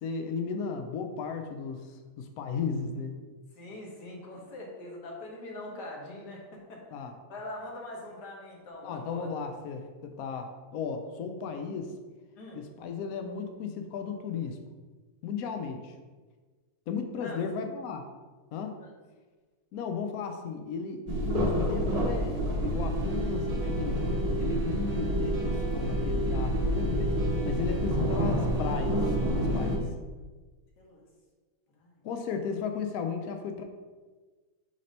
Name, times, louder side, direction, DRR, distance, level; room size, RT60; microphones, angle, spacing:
voice 1, 0.0-3.2 6.9-7.1 8.8-11.9 12.5-14.6 15.2-15.9 16.9-18.0 18.5-18.8 19.7-24.0 24.4-27.2 27.4-29.0 29.3-29.8 32.0-33.6, left 5 dB, 80° left, 5 dB, 0.8 m, -35 dB
voice 2, 3.6-6.8 7.3-9.3 12.3-12.7 17.2-17.4 18.8-18.9 30.8-31.0 31.8-32.0, left 1 dB, 60° left, -1 dB, 1.6 m, -42 dB
sound 1, 21.1-29.8, equal, 35° right, 0.6 m, -28 dB
6.3 x 2.9 x 5.2 m, 1.4 s
omnidirectional pair, 2.2 m